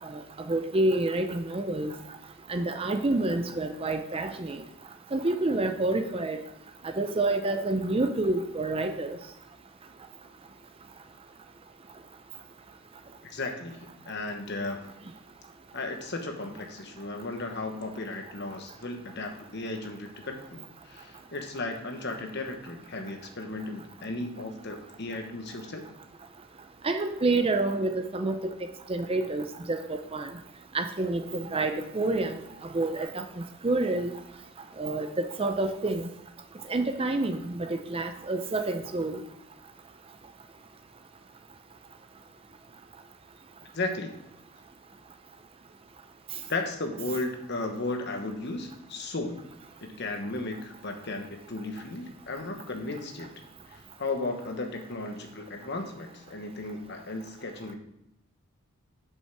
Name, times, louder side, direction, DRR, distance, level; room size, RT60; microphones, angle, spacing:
voice 1, 0.0-1.9 2.5-4.6 5.1-6.4 6.8-9.2 26.8-28.5 28.9-30.3 30.7-34.1 34.8-36.1 36.7-39.2, right 2 dB, 25° right, 7 dB, 0.5 m, -28 dB
voice 2, 13.2-14.8 15.7-25.8 43.7-44.1 46.5-49.4 49.8-53.3 53.7-57.8, left 2 dB, 50° left, 5 dB, 1.1 m, -35 dB
7.9 x 5.5 x 5.8 m, 0.85 s
head